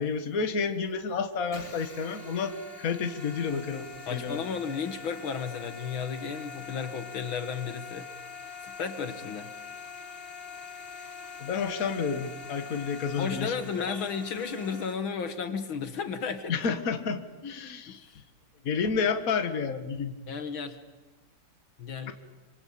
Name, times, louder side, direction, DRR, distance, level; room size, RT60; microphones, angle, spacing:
voice 1, 0.0-4.4 11.4-14.1 16.5-18.1 18.6-20.2 22.1-22.2, left 5 dB, 40° left, 8 dB, 1.9 m, -30 dB
sound 1, 1.5-14.9, left 5 dB, 25° left, 2.7 m, -44 dB
voice 2, 4.1-8.1 8.6-9.5 13.2-16.5 17.9-18.2 20.3-20.8 21.8-22.1, left 6 dB, 65° left, 9 dB, 2.2 m, -33 dB
26.5 x 26.0 x 8.7 m, 1.1 s
omnidirectional pair, 2.4 m